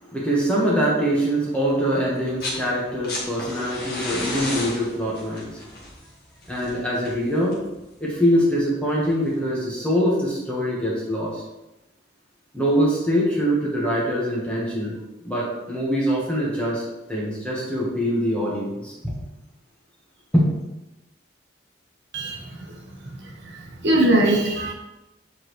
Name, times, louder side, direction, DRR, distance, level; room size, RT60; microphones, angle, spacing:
voice 1, 0.0-5.7 6.5-7.6 8.0-11.4 12.5-14.9 15.2-16.8 17.1-19.1 20.3-20.4, equal, 5° left, -6 dB, 1.4 m, -23 dB
sound 1, 2.1-2.6 2.9-7.8 9.0-9.1, left 2 dB, 50° left, 1.7 m, -33 dB
voice 2, 23.2-24.7, right 1 dB, 55° right, -1 dB, 1.3 m, -21 dB
7.8 x 4.2 x 3.2 m, 0.99 s
head